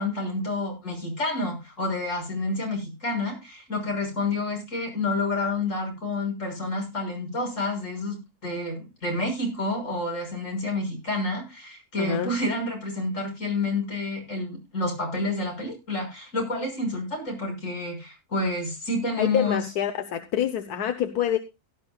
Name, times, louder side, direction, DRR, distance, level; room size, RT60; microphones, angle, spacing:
voice 1, 0.0-19.6, left 2 dB, 55° left, 1 dB, 6.6 m, -29 dB
voice 2, 12.0-12.3 19.2-21.4, left 10 dB, 90° left, 7 dB, 1.5 m, -26 dB
17.0 x 11.5 x 2.3 m, 0.25 s
omnidirectional pair, 1.6 m